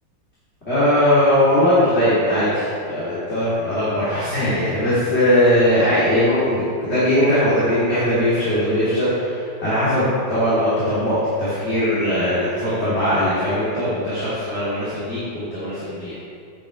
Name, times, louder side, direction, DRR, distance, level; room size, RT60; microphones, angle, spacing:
voice 1, 0.7-16.1, left 1 dB, 30° left, -12 dB, 3.2 m, -20 dB
8.3 x 6.8 x 8.3 m, 2.4 s
omnidirectional pair, 2.1 m